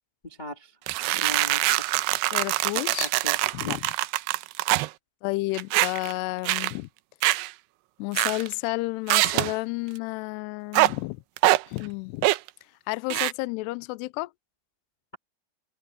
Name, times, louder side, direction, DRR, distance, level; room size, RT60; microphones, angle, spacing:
voice 1, 0.2-0.7 1.1-1.8 3.0-3.4 3.6-3.8, left 1 dB, 60° left, 0.4 m, -38 dB
sound 1, 0.9-4.9 5.5-6.1 6.5-6.7 7.2-7.5 8.2-8.5 9.1-9.5 10.7-10.9 11.4-11.6 12.2-12.5 13.1-13.3, right 18 dB, 90° right, 2.4 m, -24 dB
voice 2, 2.3-3.1 3.5-3.8 5.2-6.9 8.0-11.2 11.7-12.3 12.9-14.3, left 22 dB, 85° left, 2.5 m, -31 dB
omnidirectional pair, 5.4 m